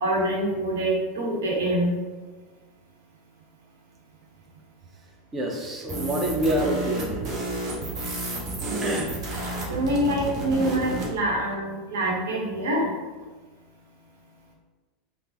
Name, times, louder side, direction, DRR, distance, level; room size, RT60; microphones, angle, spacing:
voice 1, 0.0-2.0 8.6-8.8 9.7-12.9, right 1 dB, 70° right, -3 dB, 0.9 m, -25 dB
voice 2, 5.3-7.5 8.8-9.2, right 1 dB, 25° right, 1 dB, 0.6 m, -27 dB
sound 1, 5.9-11.1, right 1 dB, 40° right, 1.0 m, -31 dB
3.6 x 2.0 x 2.8 m, 1.3 s
hypercardioid pair, 85°, 0 cm